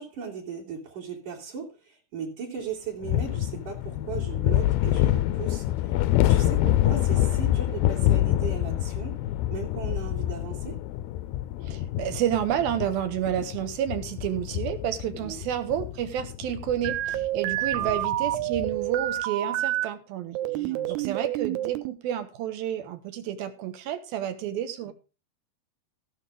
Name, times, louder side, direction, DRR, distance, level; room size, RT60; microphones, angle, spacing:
voice 1, 0.0-6.0 6.3-9.2 9.5-10.8 15.1-15.4 17.7-18.0 20.4-21.2, right 6 dB, 55° right, -6 dB, 3.9 m, -37 dB
sound 1, 3.0-18.9, left 13 dB, 80° left, 2.5 m, -27 dB
voice 2, 11.6-24.9, right 10 dB, 70° right, 9 dB, 3.0 m, -30 dB
sound 2, 16.8-19.8 20.3-21.9, right 15 dB, 85° right, 2.8 m, -28 dB
16.0 x 6.6 x 5.0 m, 0.31 s
omnidirectional pair, 4.7 m